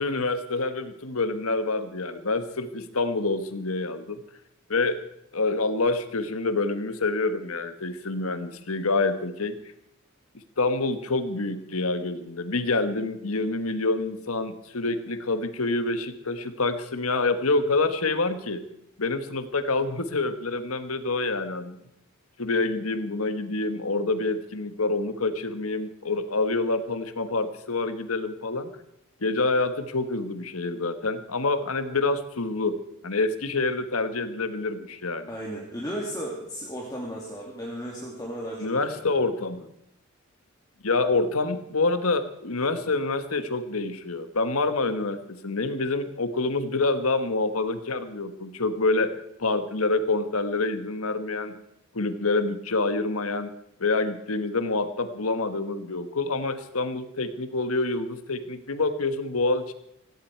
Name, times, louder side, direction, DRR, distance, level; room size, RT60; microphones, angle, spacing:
voice 1, 0.0-4.2 4.7-5.0 5.3-9.6 10.6-18.6 19.0-21.8 22.4-28.7 29.2-32.8 33.0-35.3 38.6-39.7 40.8-49.1 49.4-51.5 51.9-53.5 53.8-59.7, left 3 dB, 85° left, 10 dB, 1.5 m, -27 dB
voice 2, 35.3-39.2, equal, 15° left, -3 dB, 2.7 m, -35 dB
17.0 x 16.5 x 4.6 m, 0.78 s
head